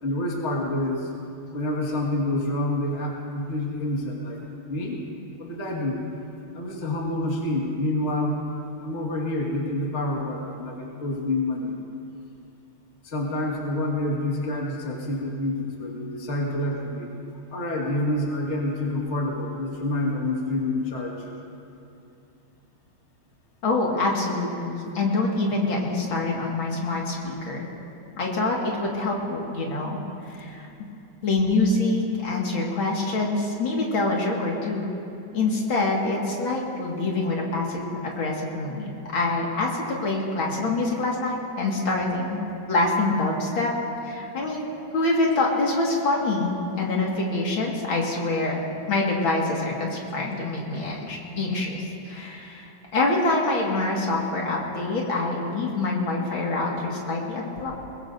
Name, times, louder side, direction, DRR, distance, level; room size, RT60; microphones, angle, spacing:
voice 1, 0.0-1.1 1.5-4.4 4.7-5.0 5.4-6.1 6.5-8.4 8.8-11.8 13.0-17.1 17.5-21.3, left 1 dB, 35° left, -2 dB, 1.9 m, -27 dB
voice 2, 23.6-27.7 28.2-30.0 30.3-30.7 31.2-34.9 35.3-43.7 44.0-57.7, left 2 dB, 70° left, -2 dB, 2.7 m, -25 dB
21.5 x 21.0 x 2.6 m, 2.8 s
omnidirectional pair, 2.3 m